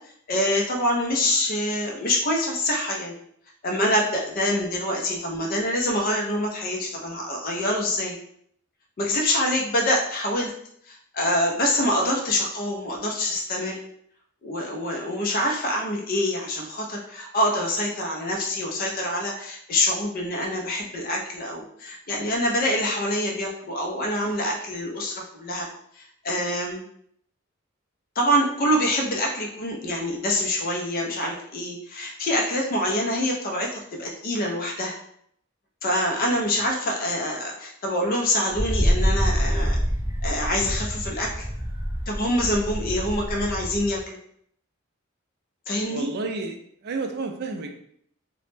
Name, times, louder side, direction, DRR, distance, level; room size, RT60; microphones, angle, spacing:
voice 1, 0.3-3.1 3.6-8.1 9.0-10.5 10.9-13.8 14.4-25.7 25.9-26.8 28.2-35.0 35.8-39.8 40.2-41.5 42.1-44.2 45.7-46.1, left 1 dB, 45° left, 0 dB, 0.4 m, -25 dB
voice 2, 36.3-36.6 45.9-47.8, right 3 dB, 50° right, 4 dB, 0.3 m, -32 dB
Wind, 38.5-44.0, equal, 10° right, 0.6 m, -26 dB
2.0 x 2.0 x 3.1 m, 0.68 s
head